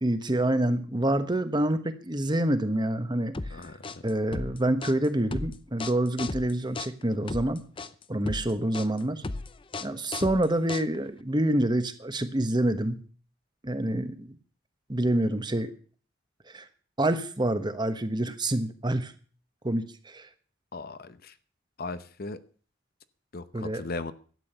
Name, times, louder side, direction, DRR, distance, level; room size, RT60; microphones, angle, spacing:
voice 1, 0.0-3.3 4.0-7.6 8.1-9.2 9.8-13.0 13.6-14.4 14.9-15.7 16.5-16.7 17.0-19.1 19.6-20.3 23.5-23.8, right 1 dB, 20° right, 10 dB, 1.2 m, -27 dB
sound 1, 3.3-11.2, left 3 dB, 25° left, 0.6 m, -36 dB
voice 2, 3.5-3.9 20.7-21.3 21.8-22.4 23.3-24.1, left 3 dB, 50° left, 13 dB, 0.8 m, -37 dB
12.5 x 9.3 x 6.8 m, 0.41 s
head